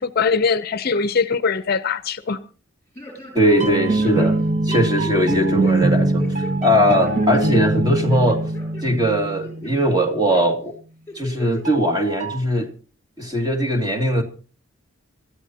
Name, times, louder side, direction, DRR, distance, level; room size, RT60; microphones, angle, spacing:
voice 1, 0.0-2.4, left 5 dB, 45° left, 0.6 m, -21 dB
sound 1, 3.0-3.7 4.0-5.8 6.2-6.5 7.0-7.6 8.0-8.8 9.2-9.9 10.3-10.5 11.1-11.6 12.0-12.1, left 2 dB, 10° left, 6.5 m, -36 dB
voice 2, 3.3-4.4 4.6-8.4 8.8-10.7 11.2-12.7 13.2-14.2, equal, 20° right, 2.3 m, -20 dB
sound 2, 3.5-10.2 11.6-12.4, right 2 dB, 35° right, 1.7 m, -23 dB
25.5 x 13.5 x 2.8 m
head